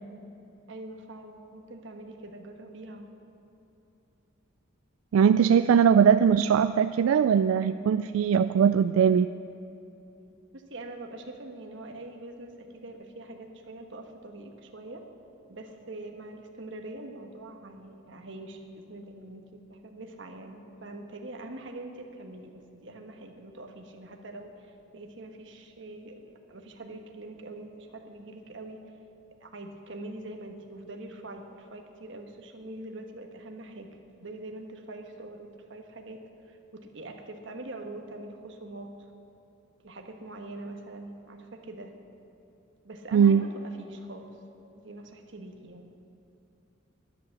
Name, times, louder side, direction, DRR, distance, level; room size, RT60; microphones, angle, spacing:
voice 1, 0.7-3.1 10.5-15.0 15.5-28.9 29.4-39.1 39.8-41.9 42.8-44.4 44.7-45.9, right 2 dB, 60° right, 4 dB, 1.3 m, -43 dB
voice 2, 5.1-9.3 43.1-43.4, right 7 dB, 85° right, 11 dB, 0.3 m, -20 dB
11.5 x 10.5 x 7.1 m, 2.9 s
head